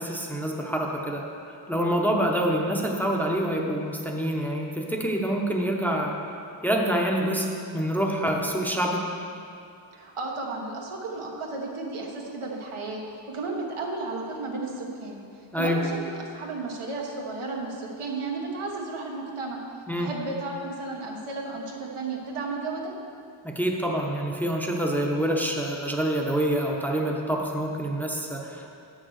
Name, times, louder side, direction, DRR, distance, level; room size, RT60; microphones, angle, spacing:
voice 1, 0.0-6.2 6.6-7.5 7.7-9.0 15.5-15.8 19.9-20.1 23.4-28.7, right 1 dB, 5° left, 0 dB, 0.8 m, -26 dB
voice 2, 9.9-15.2 15.5-19.6 20.0-22.9, right 3 dB, 85° right, -1 dB, 1.4 m, -33 dB
8.3 x 6.4 x 6.3 m, 2.5 s
wide cardioid pair, 125°, 49 cm